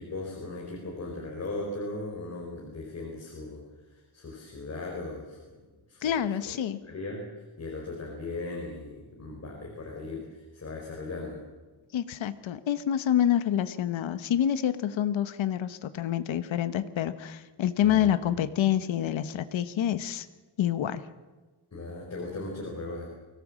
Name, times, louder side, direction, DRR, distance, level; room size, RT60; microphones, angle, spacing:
voice 1, 0.0-5.6 5.9-6.2 6.8-7.3 7.6-11.4 17.8-18.1 21.7-23.1, left 2 dB, 35° left, -1 dB, 4.7 m, -38 dB
voice 2, 6.0-6.8 11.9-20.3 20.6-21.0, left 10 dB, 90° left, 12 dB, 1.2 m, -27 dB
24.0 x 17.5 x 7.5 m, 1.2 s
wide cardioid pair, 155°, 45 cm